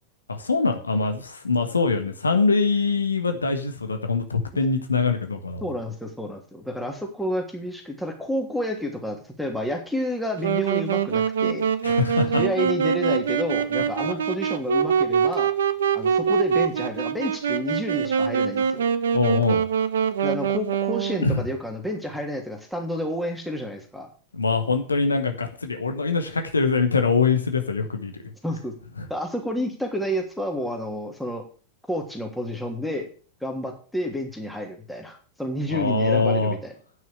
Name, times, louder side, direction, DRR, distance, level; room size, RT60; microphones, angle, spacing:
voice 1, 0.3-5.6 11.8-12.4 14.0-14.2 19.1-19.6 21.2-21.4 24.3-28.3 35.7-36.5, left 4 dB, 75° left, 6 dB, 1.3 m, -23 dB
voice 2, 5.6-11.7 12.4-15.5 15.9-18.9 20.2-24.1 28.4-28.7 29.1-31.4 31.9-33.1 33.4-36.7, equal, ahead, 1 dB, 2.9 m, -30 dB
Wind instrument woodwind instrument, 10.4-21.3, right 7 dB, 65° right, 0.9 m, -24 dB
9.5 x 6.2 x 7.9 m, 0.39 s
figure-of-eight pair, 90°, 0 cm